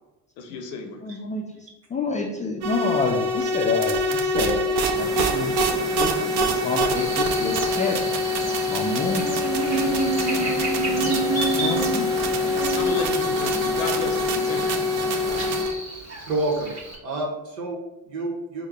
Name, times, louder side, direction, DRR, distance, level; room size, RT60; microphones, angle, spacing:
voice 1, 0.4-1.0 12.8-14.8, left 4 dB, 65° left, 6 dB, 0.6 m, -32 dB
voice 2, 1.0-1.4 1.9-8.1 8.5-9.4 10.4-10.5 11.4-12.1, left 4 dB, 15° left, 0 dB, 0.3 m, -28 dB
sound 1, 2.6-15.7, left 1 dB, 55° right, 0.7 m, -24 dB
sound 2, 4.9-15.6, equal, ahead, 0.9 m, -35 dB
Buzz, 7.0-17.0, right 3 dB, 35° right, 1.2 m, -30 dB
voice 3, 16.3-16.7 17.0-18.7, right 2 dB, 85° right, 0 dB, 1.1 m, -28 dB
4.7 x 2.2 x 3.4 m, 0.99 s
hypercardioid pair, 65°, 48 cm